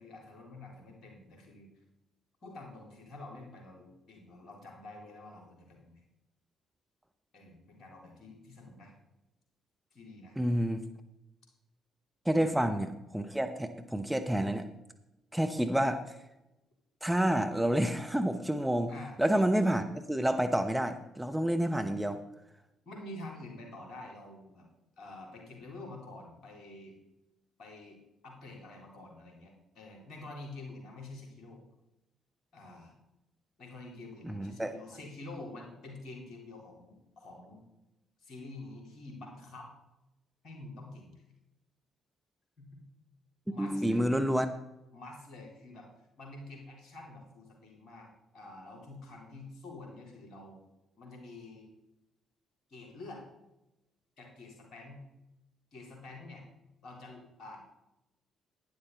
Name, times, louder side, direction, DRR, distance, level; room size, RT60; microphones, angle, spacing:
voice 1, 0.0-1.7 2.4-6.0 7.3-8.9 9.9-10.3 12.3-12.7 18.9-19.2 22.9-24.7 25.0-27.0 27.6-28.0 28.2-31.6 32.5-32.9 33.6-37.6 38.2-39.7 40.4-41.1 42.6-42.8 43.5-44.1 44.9-45.9 46.2-48.1 48.3-50.6 51.0-51.7 52.7-53.2 54.2-55.0 55.7-56.4 56.8-57.6, left 2 dB, 55° left, 0 dB, 3.8 m, -48 dB
voice 2, 10.4-10.8 12.2-14.6 15.3-16.0 17.0-18.9 19.2-22.2 34.2-34.7 43.6-44.5, right 1 dB, 5° right, 6 dB, 1.0 m, -29 dB
11.5 x 10.5 x 4.1 m, 0.93 s
figure-of-eight pair, 45°, 0 cm